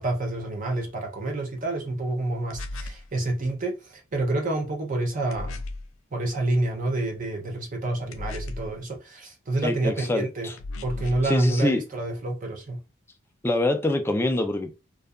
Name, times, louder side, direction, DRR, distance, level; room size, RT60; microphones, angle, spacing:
voice 1, 0.0-5.6 6.1-10.5 10.8-12.8, right 2 dB, 40° right, 0.5 m, -28 dB
sound 1, 2.5-3.1 5.3-5.9 8.1-8.8 10.6-11.3, left 2 dB, 80° left, 0.4 m, -35 dB
voice 2, 9.6-10.5 11.2-11.9 13.4-14.7, left 2 dB, 10° left, 0.4 m, -25 dB
2.7 x 2.3 x 2.3 m
head